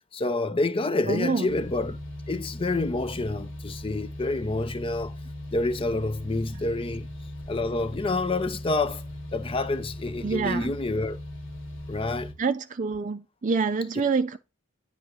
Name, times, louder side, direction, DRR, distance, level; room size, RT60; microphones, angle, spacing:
voice 1, 0.1-2.0 2.3-5.2 5.5-7.1 7.5-9.0 9.3-11.2 11.9-12.3, left 2 dB, 25° left, 0.5 m, -28 dB
voice 2, 1.1-1.5 6.5-6.6 10.2-10.7 12.4-14.4, right 4 dB, 40° right, 0.4 m, -26 dB
sound 1, 1.5-12.3, left 1 dB, 65° left, 1.9 m, -39 dB
9.5 x 3.7 x 6.1 m
head